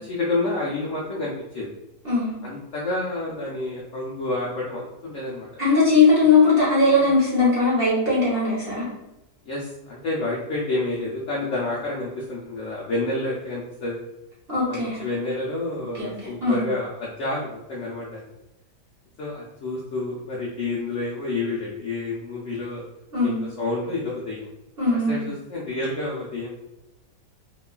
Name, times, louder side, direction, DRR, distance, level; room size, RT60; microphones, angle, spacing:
voice 1, 0.1-1.7 2.4-5.5 6.2-6.3 7.0-7.1 9.4-14.0 14.7-18.3 19.2-22.8 23.2-24.5 25.1-26.5, left 2 dB, 70° left, -5 dB, 0.7 m, -29 dB
voice 2, 5.6-8.9 14.5-15.0 16.0-16.1 16.4-16.6 23.1-23.4 24.8-25.2, left 3 dB, 45° right, -8 dB, 0.9 m, -19 dB
3.0 x 2.2 x 2.3 m, 0.93 s
omnidirectional pair, 1.8 m